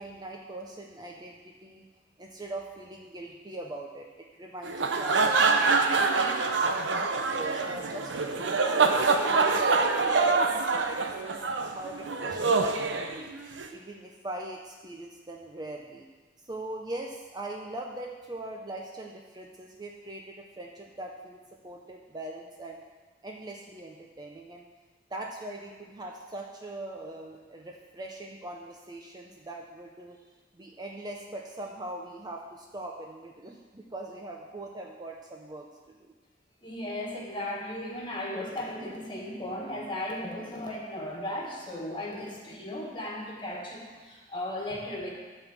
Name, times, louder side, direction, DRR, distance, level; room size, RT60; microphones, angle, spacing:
voice 1, 0.0-1.9 2.2-5.5 5.9-11.4 11.7-13.3 13.7-16.1 16.4-21.4 21.6-22.8 23.2-24.7 25.1-30.2 30.5-36.1, right 2 dB, 25° right, 0 dB, 0.7 m, -41 dB
sound 1, 4.6-13.7, right 4 dB, 80° right, 0.7 m, -25 dB
voice 2, 36.6-45.1, left 1 dB, 25° left, -2 dB, 1.9 m, -36 dB
11.0 x 4.4 x 7.3 m, 1.3 s
head